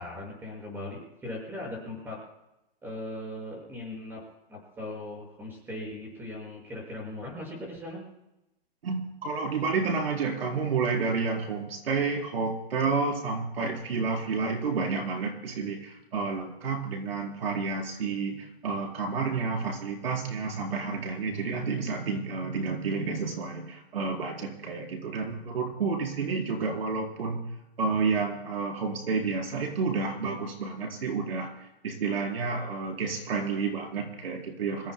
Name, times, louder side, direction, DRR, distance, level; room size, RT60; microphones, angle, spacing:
voice 1, 0.0-2.2 2.8-4.2 4.5-8.0, left 1 dB, 5° right, -1 dB, 5.9 m, -39 dB
voice 2, 8.8-27.4 27.8-31.5 31.8-34.9, right 4 dB, 80° right, 0 dB, 4.6 m, -30 dB
28.0 x 15.5 x 2.2 m, 0.93 s
hypercardioid pair, 170°, 29 cm